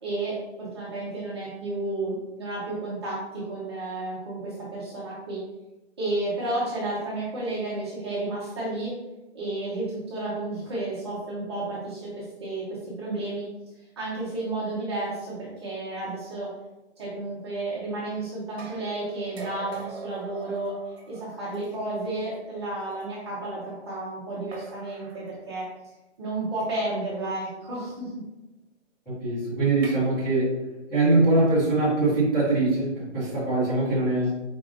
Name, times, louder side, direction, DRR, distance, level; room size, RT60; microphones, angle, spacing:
voice 1, 0.0-5.4 6.0-8.9 9.3-13.5 14.0-16.5 17.0-20.8 21.1-25.7 26.2-28.1, right 2 dB, 25° right, -7 dB, 0.9 m, -32 dB
sound 1, 18.6-22.1 23.0-23.1 24.5-25.3 26.6-26.9 29.7-29.9, right 3 dB, 60° right, 1.3 m, -43 dB
voice 2, 29.1-30.6 30.9-34.3, right 2 dB, 5° left, -15 dB, 1.0 m, -22 dB
4.9 x 4.0 x 2.5 m, 1.0 s
hypercardioid pair, 170°, 35 cm